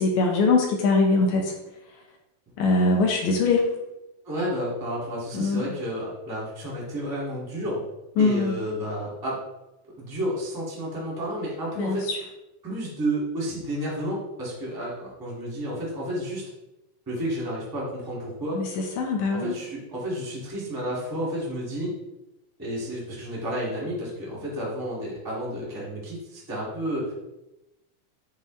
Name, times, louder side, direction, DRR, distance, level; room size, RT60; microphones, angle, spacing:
voice 1, 0.0-1.5 2.6-3.7 5.3-5.7 8.2-8.6 11.8-12.2 18.5-19.6, left 3 dB, 70° left, 1 dB, 1.9 m, -22 dB
voice 2, 4.2-7.8 8.2-9.4 10.0-12.1 12.6-16.5 17.0-18.6 19.3-22.0 22.6-27.1, equal, 15° right, -5 dB, 0.7 m, -31 dB
9.2 x 3.3 x 3.2 m, 0.94 s
omnidirectional pair, 4.3 m